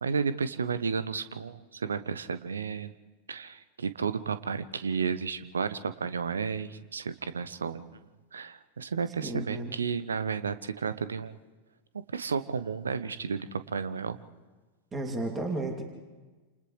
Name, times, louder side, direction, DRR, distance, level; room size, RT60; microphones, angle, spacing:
voice 1, 0.0-2.9 3.3-8.0 8.3-11.3 12.1-14.2, right 5 dB, 70° right, 13 dB, 0.9 m, -32 dB
voice 2, 9.2-9.7 14.9-15.8, right 2 dB, 20° right, 2 dB, 2.7 m, -33 dB
29.5 x 28.0 x 3.3 m, 1.3 s
figure-of-eight pair, 90°, 0 cm